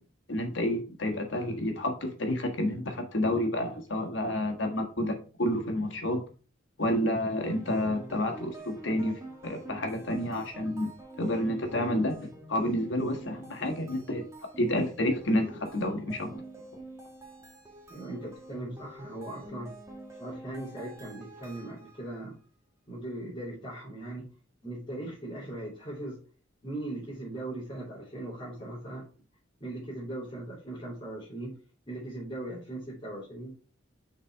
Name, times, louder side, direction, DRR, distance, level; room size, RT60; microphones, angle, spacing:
voice 1, 0.3-6.2 6.8-10.9 11.2-14.2 14.6-16.3, left 1 dB, 65° left, 4 dB, 1.5 m, -29 dB
sound 1, 7.4-22.1, right 1 dB, 15° right, 1.2 m, -46 dB
voice 2, 17.9-19.7 20.2-22.3 22.9-24.3 24.6-26.2 26.6-29.0 29.6-31.5 31.9-33.5, right 1 dB, 25° left, -8 dB, 3.0 m, -39 dB
6.5 x 4.2 x 4.6 m, 0.37 s
head